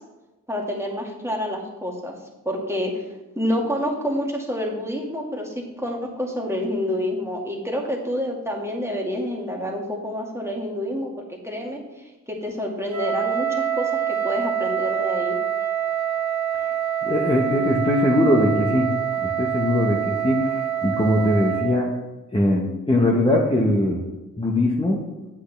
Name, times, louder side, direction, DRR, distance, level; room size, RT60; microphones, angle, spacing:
voice 1, 0.5-2.2 2.5-3.0 3.4-15.4, equal, 5° right, -1 dB, 2.0 m, -28 dB
Wind instrument woodwind instrument, 12.9-21.8, right 9 dB, 50° right, 1.4 m, -25 dB
voice 2, 17.0-18.9 19.2-21.9 22.3-24.0 24.4-25.0, left 1 dB, 15° left, -1 dB, 1.3 m, -21 dB
8.5 x 8.1 x 3.4 m, 1.1 s
cardioid pair, 70°, 36 cm